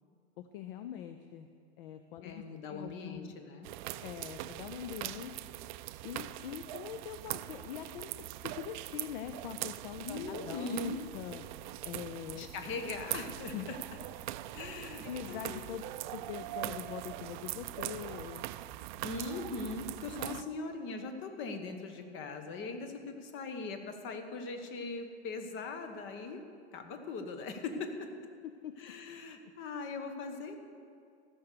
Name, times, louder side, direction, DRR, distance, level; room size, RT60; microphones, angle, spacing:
voice 1, 0.4-1.5 1.8-3.3 4.0-5.5 6.0-11.5 11.8-12.5 13.5-13.7 14.7-15.8 16.1-18.5 28.6-29.6, left 10 dB, 55° left, 8 dB, 0.6 m, -43 dB
voice 2, 2.2-3.7 10.0-11.0 12.4-13.8 14.5-15.6 19.0-26.4 26.7-28.1 28.8-30.6, left 3 dB, 35° left, 7 dB, 1.3 m, -40 dB
sound 1, 3.6-20.4, right 16 dB, 50° right, 0.4 m, -42 dB
14.5 x 6.2 x 6.8 m, 2.3 s
hypercardioid pair, 100°, 33 cm